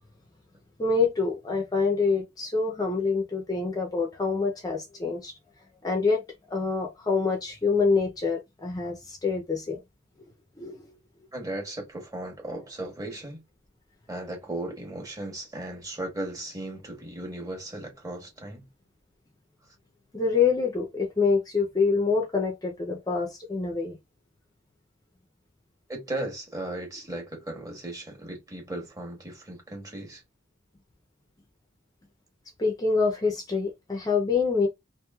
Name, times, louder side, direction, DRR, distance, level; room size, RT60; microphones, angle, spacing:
voice 1, 0.8-5.3 5.8-6.2 6.5-9.8 10.6-10.9 20.1-24.0 32.6-34.7, left 4 dB, 20° left, 0.5 m, -26 dB
voice 2, 11.3-13.4 14.1-18.7 25.9-30.2, right 1 dB, 20° right, 1.0 m, -36 dB
3.0 x 2.5 x 2.3 m
head